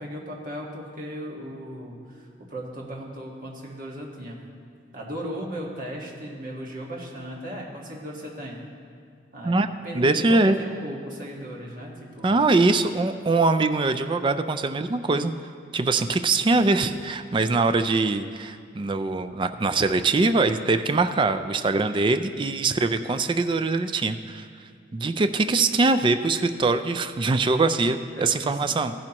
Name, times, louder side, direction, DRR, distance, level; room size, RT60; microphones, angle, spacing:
voice 1, 0.0-4.4 4.9-8.6 9.3-9.6 9.8-12.3 28.1-28.4 28.7-28.9, equal, 45° right, -2 dB, 1.6 m, -37 dB
voice 2, 9.9-10.6 12.2-15.3 15.7-24.5 24.9-28.9, right 3 dB, 25° right, 9 dB, 0.3 m, -22 dB
14.5 x 10.5 x 3.0 m, 2.2 s
head